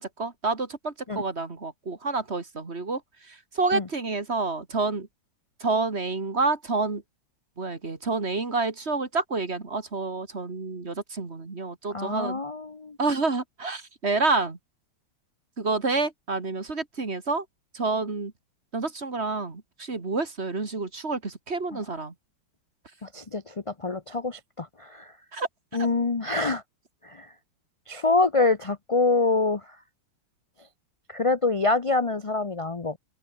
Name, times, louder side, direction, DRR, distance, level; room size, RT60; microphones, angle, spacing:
voice 1, 0.0-5.1 5.6-7.0 7.6-12.4 13.0-14.6 15.6-17.5 17.7-18.3 18.7-22.1 25.3-25.5, right 3 dB, 35° right, 2.6 m, -28 dB
voice 2, 11.9-13.0 21.7-21.8 23.0-25.2 25.7-26.6 27.0-27.3 27.9-29.8 30.6-30.7 31.1-33.0, left 3 dB, 35° left, 0.5 m, -26 dB
open air
omnidirectional pair, 2.1 m